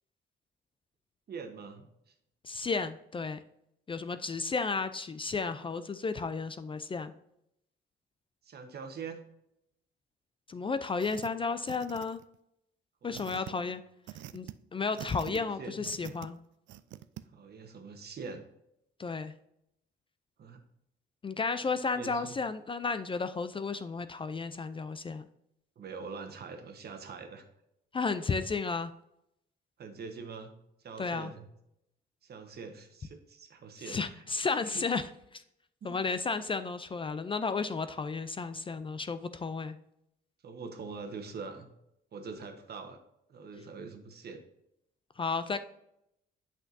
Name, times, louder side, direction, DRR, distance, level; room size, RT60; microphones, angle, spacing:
voice 1, 1.3-2.1 8.4-9.2 11.2-11.3 13.0-13.7 15.3-15.8 17.3-18.4 20.4-20.6 21.9-22.3 25.8-27.5 29.8-30.5 30.8-31.5 32.2-34.3 34.6-34.8 35.8-36.0 40.4-41.7 42.1-43.0 43.3-44.4, right 5 dB, 55° right, 6 dB, 1.1 m, -44 dB
voice 2, 2.4-3.4 3.9-7.1 10.5-12.2 13.0-13.8 14.3-16.4 19.0-19.3 21.2-25.3 27.9-28.9 31.0-31.3 33.9-35.4 35.8-39.8 45.2-45.6, left 4 dB, 25° left, 11 dB, 0.4 m, -33 dB
sound 1, 11.0-11.3 11.7-12.3 13.1-13.5 14.1-14.5 15.0-15.4 15.8-16.3 16.7-17.2, right 13 dB, 70° right, 0.4 m, -45 dB
8.2 x 5.9 x 2.7 m, 0.78 s
cardioid pair, 90°, 20 cm